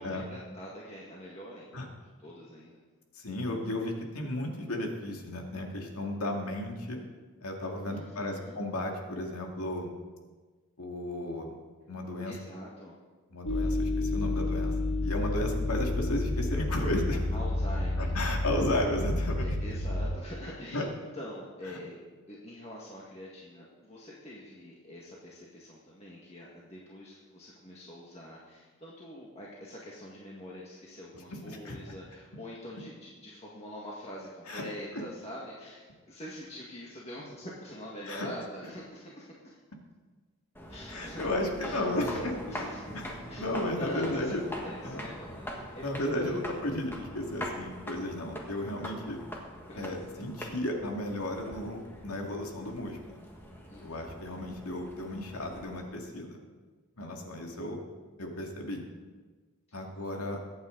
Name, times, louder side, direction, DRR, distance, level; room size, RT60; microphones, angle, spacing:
voice 1, 0.0-1.9 2.2-2.8 7.9-8.6 12.3-12.9 13.6-13.7 17.3-18.1 19.4-22.0 22.3-39.6 40.7-41.3 41.6-42.2 42.5-43.0 43.3-43.5 43.8-46.4 49.7-49.9 53.6-54.0 57.1-57.5 59.7-59.8 60.2-60.3, equal, 30° left, -5 dB, 1.8 m, -45 dB
voice 2, 3.1-7.0 7.4-9.9 10.8-11.5 11.9-12.3 13.3-17.2 18.0-19.5 20.7-20.8 31.5-31.9 34.5-34.6 38.1-38.3 40.9-42.4 42.9-43.1 43.4-44.4 44.8-45.1 45.8-49.2 49.8-53.2 53.8-56.4 57.0-57.8 58.2-58.8 59.7-60.4, left 1 dB, 90° left, 1 dB, 2.3 m, -34 dB
sound 1, 13.5-20.1, left 2 dB, 70° left, 2.0 m, -30 dB
sound 2, 40.5-55.8, equal, 10° left, 1.6 m, -43 dB
23.0 x 8.8 x 3.9 m, 1.4 s
head